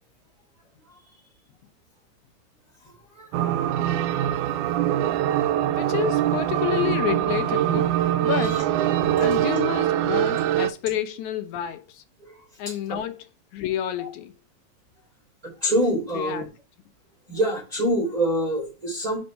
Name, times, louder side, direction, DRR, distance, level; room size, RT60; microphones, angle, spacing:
sound 1, 3.3-10.7, right 12 dB, 90° right, 2.0 m, -23 dB
voice 1, 5.8-8.0 8.2-8.7 9.2-12.0 12.6-13.3 13.5-14.3 16.1-16.4, left 11 dB, 80° left, 2.1 m, -29 dB
voice 2, 8.3-8.6 9.2-9.4 12.2-12.3 12.6-13.0 14.0-14.1 15.6-16.4 17.3-19.2, right 1 dB, 15° right, 3.2 m, -26 dB
5.3 x 5.2 x 4.3 m
omnidirectional pair, 3.4 m